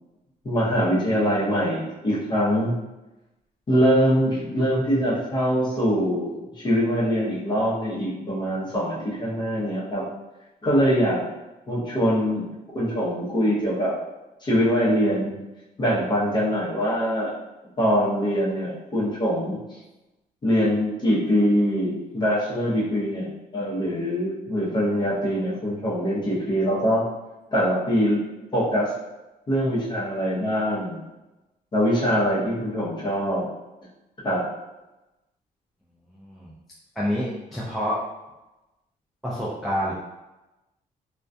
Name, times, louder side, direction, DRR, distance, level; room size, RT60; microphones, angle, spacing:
voice 1, 0.4-2.7 3.7-10.0 10.6-11.2 11.7-12.5 12.7-13.9 14.4-15.4 15.8-17.3 17.8-19.6 20.4-27.1 27.5-28.2 28.5-28.9 29.5-31.0 31.7-33.5 34.2-34.4, equal, 30° left, -6 dB, 0.7 m, -23 dB
voice 2, 36.1-36.5 37.0-38.0 39.2-39.9, equal, ahead, -7 dB, 0.3 m, -28 dB
2.3 x 2.2 x 2.5 m, 1.0 s
cardioid pair, 160°, 15 cm